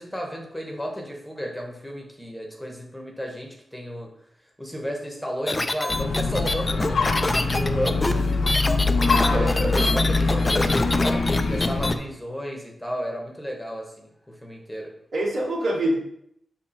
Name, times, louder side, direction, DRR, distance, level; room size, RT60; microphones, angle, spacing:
voice 1, 0.0-4.1 4.6-8.5 9.0-14.9, equal, 5° left, 0 dB, 1.0 m, -33 dB
sound 1, 5.5-11.9, left 2 dB, 20° left, 0.4 m, -26 dB
sound 2, 5.9-11.9, left 3 dB, 80° left, 1.0 m, -23 dB
voice 2, 9.0-10.4 15.1-15.9, right 1 dB, 80° right, -6 dB, 2.6 m, -27 dB
5.7 x 4.3 x 4.4 m, 0.72 s
wide cardioid pair, 135°, 0 cm